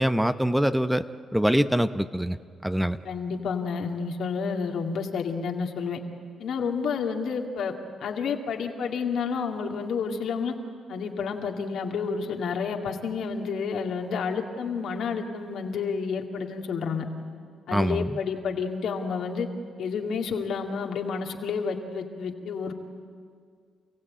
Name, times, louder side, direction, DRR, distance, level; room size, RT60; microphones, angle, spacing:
voice 1, 0.0-2.4 2.6-3.0 17.7-18.2, equal, 5° right, 11 dB, 0.8 m, -24 dB
voice 2, 3.0-6.0 6.4-7.7 8.0-10.5 10.9-17.0 17.7-19.5 19.8-22.7, left 5 dB, 75° left, 2 dB, 2.2 m, -30 dB
28.0 x 16.0 x 8.8 m, 2.1 s
supercardioid pair, 60°, 0 cm